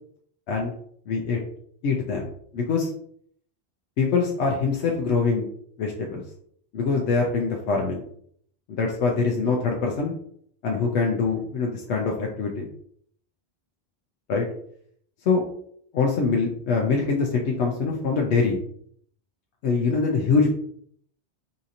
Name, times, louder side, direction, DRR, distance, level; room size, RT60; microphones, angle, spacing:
voice 1, 1.1-1.4 1.8-2.3 2.5-2.9 4.0-5.4 5.8-6.2 6.7-8.0 8.7-10.1 10.6-12.7 14.3-14.5 15.3-15.4 15.9-18.6 19.6-20.5, left 4 dB, 90° left, -1 dB, 0.9 m, -24 dB
4.1 x 2.7 x 2.5 m, 0.64 s
omnidirectional pair, 1.1 m